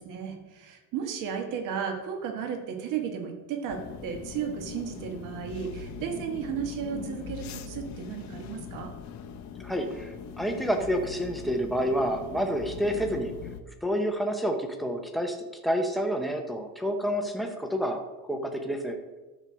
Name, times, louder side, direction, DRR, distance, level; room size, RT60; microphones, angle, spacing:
voice 1, 0.0-8.9, right 7 dB, 50° right, 5 dB, 1.5 m, -34 dB
sound 1, 3.7-13.6, left 7 dB, 45° left, 0.8 m, -41 dB
voice 2, 9.6-13.4 13.8-18.0 18.3-19.0, equal, ahead, 4 dB, 0.7 m, -29 dB
12.5 x 4.4 x 6.1 m, 1.1 s
cardioid pair, 180°, 40 cm